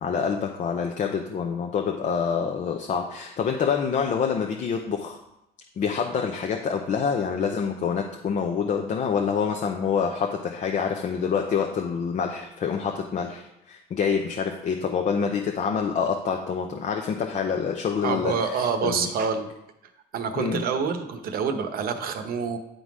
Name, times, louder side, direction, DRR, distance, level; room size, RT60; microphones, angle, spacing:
voice 1, 0.0-5.2 5.8-19.1 20.3-20.6, left 6 dB, 50° left, 2 dB, 0.7 m, -27 dB
voice 2, 18.0-19.5 20.1-22.6, right 6 dB, 60° right, 8 dB, 0.9 m, -27 dB
10.0 x 3.9 x 4.8 m, 0.86 s
cardioid pair, 110°, 17 cm